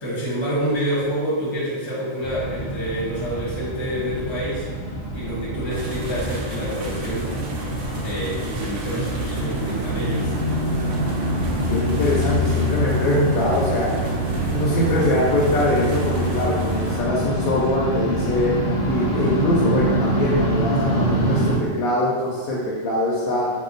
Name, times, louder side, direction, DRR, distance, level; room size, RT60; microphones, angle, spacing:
voice 1, 0.0-4.7 5.1-7.3 8.0-10.4, right 1 dB, 25° left, -7 dB, 0.8 m, -27 dB
sound 1, 2.2-21.6, equal, 55° left, 0.8 m, -25 dB
sound 2, 5.7-17.0, right 2 dB, 65° right, 0.8 m, -31 dB
voice 2, 11.7-13.9 14.5-18.6 18.9-23.5, left 1 dB, 80° left, -6 dB, 1.0 m, -22 dB
2.7 x 2.2 x 3.8 m, 1.5 s
omnidirectional pair, 1.5 m